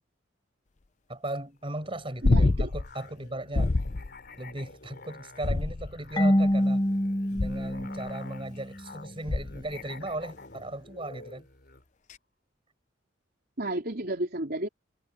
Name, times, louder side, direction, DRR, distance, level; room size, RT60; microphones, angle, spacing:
voice 1, 1.1-3.7 4.4-6.8 7.3-11.5, right 1 dB, 30° right, 5.9 m, -37 dB
Musical instrument, 1.7-11.9, left 3 dB, 55° left, 4.4 m, -49 dB
sound 1, 2.2-2.9 3.5-4.1 5.4-6.1 7.4-7.8 9.3-9.7 12.1-12.2, left 2 dB, 40° left, 0.6 m, -26 dB
voice 2, 2.2-2.7 13.6-14.7, right 1 dB, 55° right, 4.1 m, -32 dB
Marimba xylophone / Wood, 6.2-8.9, equal, 20° left, 1.2 m, -26 dB
head